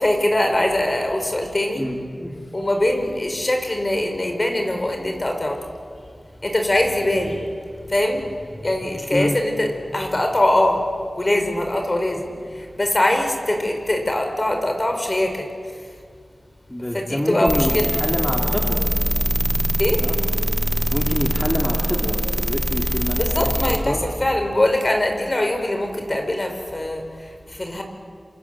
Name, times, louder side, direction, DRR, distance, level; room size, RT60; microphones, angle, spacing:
voice 1, 0.0-1.9 2.5-5.7 6.4-7.5 7.9-8.2 8.6-10.9 11.2-15.5 16.9-17.9 19.8-20.0 23.2-27.8, left 1 dB, 40° left, 4 dB, 4.9 m, -22 dB
voice 2, 1.7-2.5 9.1-9.4 16.7-18.8 20.0-20.2 20.9-23.5 23.8-24.0, equal, 20° left, -1 dB, 3.7 m, -26 dB
sound 1, 17.5-23.8, right 1 dB, 10° right, 2.5 m, -22 dB
27.5 x 27.0 x 7.8 m, 2.1 s
wide cardioid pair, 50°, 0 cm